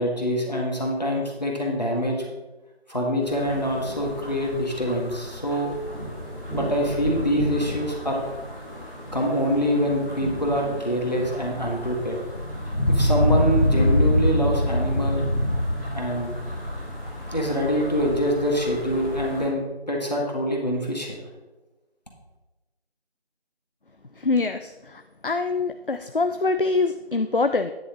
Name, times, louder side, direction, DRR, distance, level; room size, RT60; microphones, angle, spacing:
voice 1, 0.0-2.3 2.9-5.7 6.5-8.2 9.1-12.2 12.9-15.2 15.9-16.3 17.3-21.2, equal, 40° left, -1 dB, 1.8 m, -25 dB
sound 1, 3.2-19.5, left 1 dB, 15° right, 3.4 m, -27 dB
voice 2, 24.2-27.7, left 3 dB, 55° left, 9 dB, 0.4 m, -24 dB
10.0 x 8.7 x 3.0 m, 1.1 s
figure-of-eight pair, 180°, 32 cm